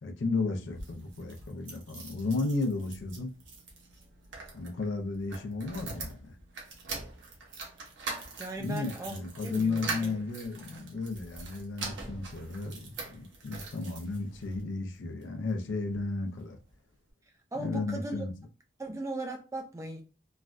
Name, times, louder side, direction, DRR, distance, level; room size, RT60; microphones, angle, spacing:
voice 1, 0.0-3.3 4.5-6.4 8.6-16.6 17.6-18.3, left 3 dB, 75° left, 0.5 m, -34 dB
sound 1, 0.6-14.6 15.2-16.1 16.4-16.5 16.7-16.8, right 3 dB, 70° right, 0.8 m, -43 dB
voice 2, 8.4-10.2 17.5-18.3 18.8-20.0, right 2 dB, 15° right, 0.3 m, -38 dB
3.1 x 2.2 x 2.5 m
head